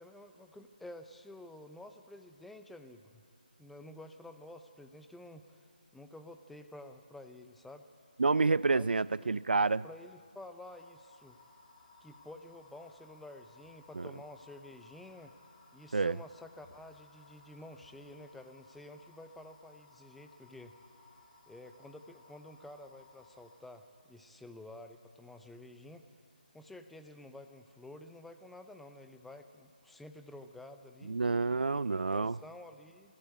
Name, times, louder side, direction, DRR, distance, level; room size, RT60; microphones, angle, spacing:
voice 1, 0.0-3.2 3.6-5.6 5.9-7.9 8.7-9.4 9.8-11.4 12.0-15.3 15.7-20.7 21.5-26.0 26.5-31.2 31.7-33.1, left 1 dB, ahead, 7 dB, 0.6 m, -51 dB
voice 2, 8.2-9.8 14.0-14.1 15.9-16.2 31.1-32.4, right 3 dB, 75° right, 21 dB, 0.4 m, -28 dB
sound 1, 10.6-23.5, left 3 dB, 25° left, 2.9 m, -61 dB
22.5 x 15.5 x 8.1 m, 2.4 s
figure-of-eight pair, 160°, 5 cm